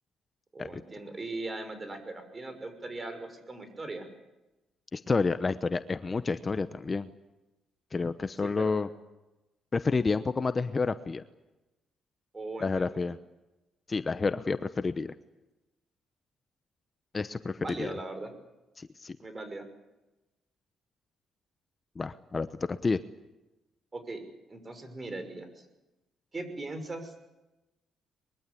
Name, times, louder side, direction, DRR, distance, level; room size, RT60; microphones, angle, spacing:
voice 1, 0.5-4.1 8.4-8.7 12.3-13.0 17.6-18.3 19.2-19.6 23.9-24.2 24.5-25.7 26.3-27.1, right 2 dB, 25° right, 8 dB, 6.1 m, -39 dB
voice 2, 4.9-7.1 7.9-8.9 9.7-11.2 12.6-13.2 13.9-15.1 17.1-18.0 18.8-19.2 22.0-23.0, left 4 dB, 30° left, 12 dB, 0.9 m, -29 dB
23.5 x 23.0 x 8.5 m, 1.0 s
cardioid pair, 90°, 0 cm